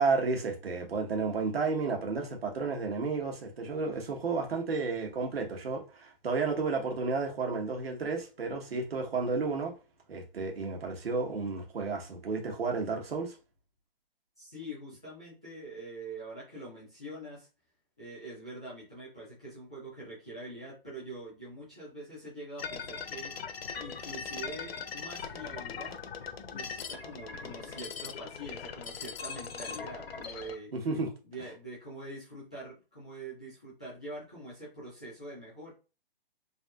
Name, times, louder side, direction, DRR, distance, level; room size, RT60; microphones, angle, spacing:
voice 1, 0.0-9.7 10.1-13.4 30.7-31.1, right 4 dB, 85° right, 1.3 m, -32 dB
voice 2, 14.4-17.5 18.0-23.3 23.8-26.0 26.5-30.7 31.2-35.7, right 1 dB, 5° right, 0.4 m, -44 dB
sound 1, 22.6-30.6, left 6 dB, 85° left, 0.7 m, -40 dB
3.4 x 2.7 x 2.4 m
hypercardioid pair, 170°, 29 cm